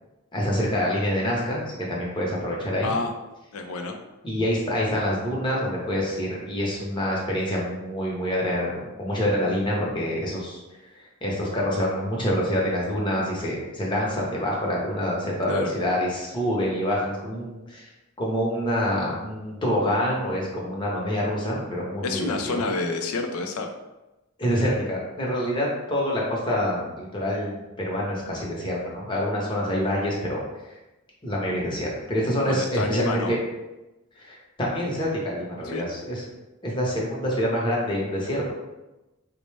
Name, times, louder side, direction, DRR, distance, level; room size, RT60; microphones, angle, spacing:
voice 1, 0.3-2.9 4.2-10.6 10.9-17.9 18.2-22.6 24.4-30.4 31.2-33.4 34.2-36.2 36.6-38.5, equal, 20° left, -4 dB, 0.8 m, -26 dB
voice 2, 2.8-3.1 3.5-4.0 15.5-15.7 22.0-23.7 32.5-33.3 35.6-35.9, left 3 dB, 90° left, 5 dB, 0.5 m, -28 dB
4.0 x 2.1 x 3.2 m, 1.0 s
head